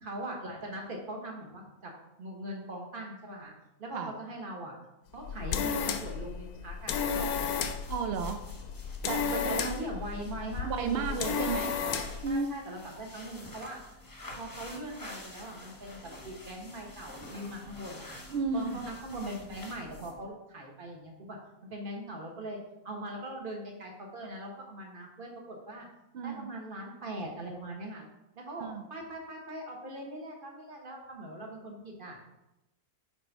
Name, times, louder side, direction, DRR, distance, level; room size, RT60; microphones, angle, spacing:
voice 1, 0.0-1.9 2.2-3.5 3.8-4.7 5.1-7.5 9.3-11.6 11.8-13.8 14.4-18.2 18.5-22.6 22.8-25.9 26.2-28.1 28.4-32.2, right 1 dB, 35° right, 0 dB, 1.3 m, -41 dB
sound 1, 5.1-12.3, left 6 dB, 90° left, 1.1 m, -33 dB
sound 2, 6.7-20.3, left 1 dB, 15° left, 0.9 m, -49 dB
voice 2, 7.9-8.4 9.1-9.6 10.6-11.7 12.2-12.6 18.3-18.8 26.1-26.5 28.6-28.8, right 5 dB, 75° right, 6 dB, 0.5 m, -33 dB
5.4 x 4.4 x 5.3 m, 0.94 s
omnidirectional pair, 1.6 m